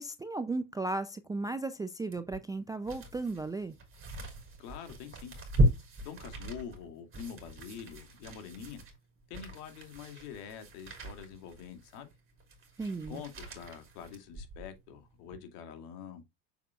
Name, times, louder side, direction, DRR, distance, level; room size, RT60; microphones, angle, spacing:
voice 1, 0.0-3.8 12.8-13.2, right 3 dB, 10° right, 0.4 m, -35 dB
sound 1, 2.1-14.8 15.2-15.4, right 1 dB, 25° right, 3.9 m, -36 dB
voice 2, 4.6-5.3 6.0-8.8 9.3-12.1 13.1-16.3, left 7 dB, 65° left, 2.3 m, -45 dB
7.1 x 7.0 x 2.4 m
hypercardioid pair, 95°, 48 cm